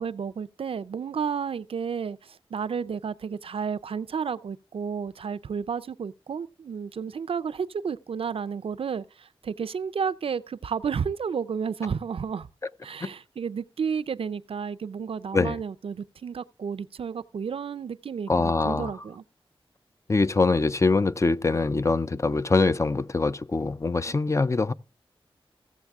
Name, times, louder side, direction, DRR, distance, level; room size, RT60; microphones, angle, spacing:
voice 1, 0.0-12.5 12.8-19.2 24.1-24.2, right 6 dB, 75° right, 0.5 m, -32 dB
voice 2, 18.3-18.9 20.1-24.7, left 3 dB, 30° left, 0.4 m, -23 dB
15.5 x 7.2 x 3.5 m
wide cardioid pair, 90°, 10 cm